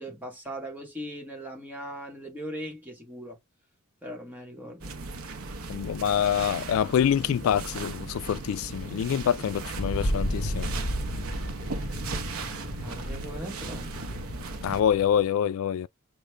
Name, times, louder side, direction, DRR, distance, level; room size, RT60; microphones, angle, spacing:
voice 1, 0.0-3.4 4.0-4.9 12.8-14.1, equal, 10° right, 1.2 m, -39 dB
sound 1, 4.8-14.8, right 3 dB, 90° right, 0.7 m, -37 dB
voice 2, 5.7-10.7 14.6-15.9, left 9 dB, 75° left, 0.3 m, -26 dB
Wind, 9.7-15.2, equal, 50° left, 1.0 m, -33 dB
5.0 x 2.2 x 3.2 m
head